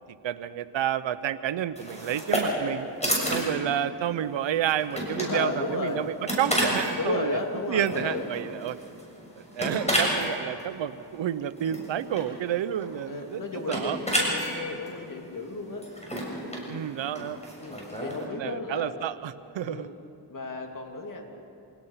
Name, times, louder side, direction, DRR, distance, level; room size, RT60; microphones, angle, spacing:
voice 1, 0.2-2.9 3.3-7.4 7.7-8.8 9.4-14.0 16.7-17.4 17.9-19.9, right 10 dB, 80° right, 14 dB, 0.9 m, -30 dB
sound 1, 1.7-18.2, equal, 15° left, 6.9 m, -32 dB
voice 2, 5.2-6.0 7.0-8.3 13.0-15.9 17.6-18.9 19.6-19.9 20.3-21.2, left 3 dB, 45° left, 2 dB, 3.0 m, -33 dB
27.0 x 18.0 x 5.8 m, 2.7 s
cardioid pair, 70°, 44 cm